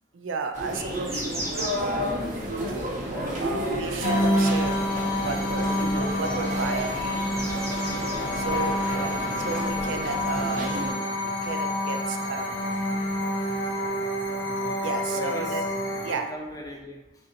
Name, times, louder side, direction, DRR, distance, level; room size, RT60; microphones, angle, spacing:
voice 1, 0.1-1.9 2.7-2.8 3.4-4.8 5.2-7.0 8.3-11.0 11.4-12.6 14.8-15.6 16.0-16.3, right 4 dB, 85° right, 6 dB, 0.4 m, -33 dB
sound 1, 0.5-10.9, equal, 40° right, 1.0 m, -32 dB
sound 2, 0.7-9.2, equal, 15° right, 0.8 m, -39 dB
sound 3, 4.0-16.1, left 1 dB, 75° left, 1.1 m, -28 dB
voice 2, 5.5-5.9 6.3-6.4 7.4-7.6 8.1-9.1 11.4-11.5 12.6-12.8 14.4-15.6 15.9-17.0, left 1 dB, 20° left, 0 dB, 0.5 m, -42 dB
4.1 x 2.5 x 3.8 m, 1.0 s
head